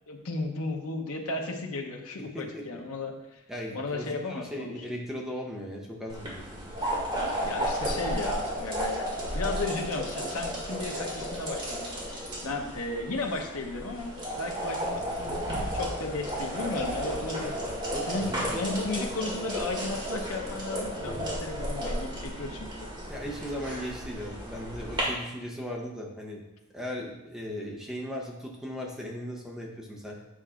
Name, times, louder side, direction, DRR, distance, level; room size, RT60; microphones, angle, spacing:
voice 1, 0.1-3.4 3.7-4.7 7.4-9.1 9.3-12.1 12.4-15.3 15.7-17.8 18.1-22.9, left 2 dB, 85° left, 2 dB, 0.9 m, -34 dB
voice 2, 2.3-2.8 3.5-6.7 17.9-18.7 23.1-26.4 26.7-30.2, equal, 5° right, -1 dB, 0.7 m, -37 dB
sound 1, 6.1-25.0, equal, 25° right, 2.1 m, -33 dB
8.6 x 5.6 x 2.5 m, 0.91 s
head